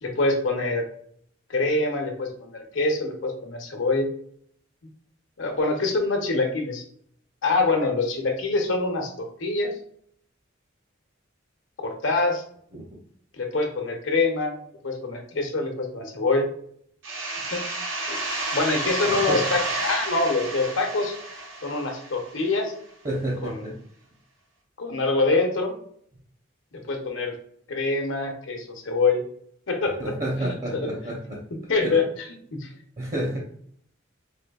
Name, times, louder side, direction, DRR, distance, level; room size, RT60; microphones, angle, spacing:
voice 1, 0.0-0.8 1.5-4.1 5.4-6.8 7.4-9.7 11.8-12.4 13.4-16.5 17.5-18.2 18.5-21.1 21.6-22.7 23.4-23.7 24.8-25.7 26.7-27.3 27.7-29.2 29.7-30.1 30.4-30.9 31.7-32.1 32.5-32.7, left 3 dB, 80° left, 3 dB, 0.9 m, -25 dB
sound 1, 17.0-22.6, right 2 dB, 85° right, 0.8 m, -30 dB
voice 2, 19.1-19.4 23.0-23.8 30.0-31.4 31.8-31.9 33.0-33.4, right 1 dB, 40° right, -2 dB, 0.7 m, -29 dB
4.4 x 2.6 x 2.3 m, 0.63 s
head